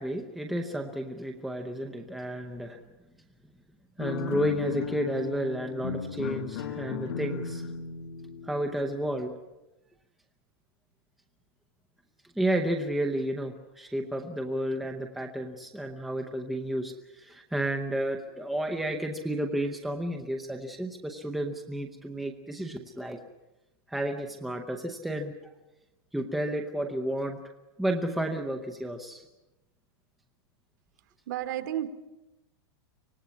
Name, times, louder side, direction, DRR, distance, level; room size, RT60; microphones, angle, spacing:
voice 1, 0.0-2.8 4.0-7.6 8.4-9.3 12.4-23.2 23.9-25.5 26.1-27.4 27.8-29.3, right 1 dB, ahead, 3 dB, 0.7 m, -32 dB
sound 1, 4.0-9.3, left 7 dB, 75° left, 1.5 m, -36 dB
voice 2, 31.3-31.9, right 12 dB, 45° right, 9 dB, 1.7 m, -31 dB
25.0 x 18.5 x 8.4 m, 0.99 s
supercardioid pair, 180°, 13 cm